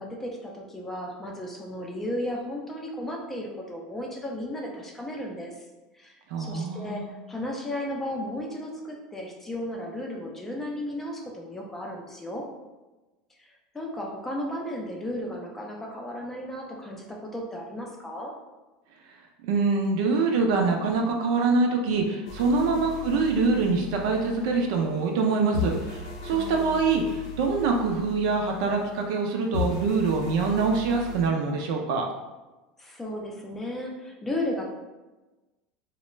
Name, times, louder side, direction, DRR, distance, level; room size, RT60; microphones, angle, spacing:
voice 1, 0.0-5.5 5.9-7.0 7.3-12.4 13.4-18.3 22.5-22.8 26.3-26.9 32.8-34.7, left 1 dB, 10° left, -1 dB, 0.4 m, -34 dB
voice 2, 6.3-7.1 19.4-32.1, right 4 dB, 70° right, 2 dB, 0.4 m, -25 dB
sound 1, 22.3-25.3 25.5-29.2 29.5-31.3, left 4 dB, 85° left, 0.6 m, -37 dB
2.3 x 2.1 x 3.0 m, 1.1 s
supercardioid pair, 135°, 3 cm